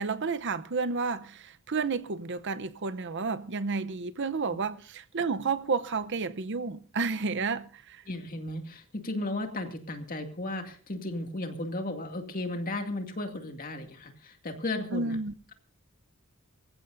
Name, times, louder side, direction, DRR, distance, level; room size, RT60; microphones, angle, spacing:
voice 1, 0.0-8.0 14.9-15.3, right 4 dB, 55° right, 0.7 m, -31 dB
voice 2, 8.1-15.2, left 2 dB, 40° left, 2.3 m, -35 dB
24.0 x 15.0 x 2.6 m
head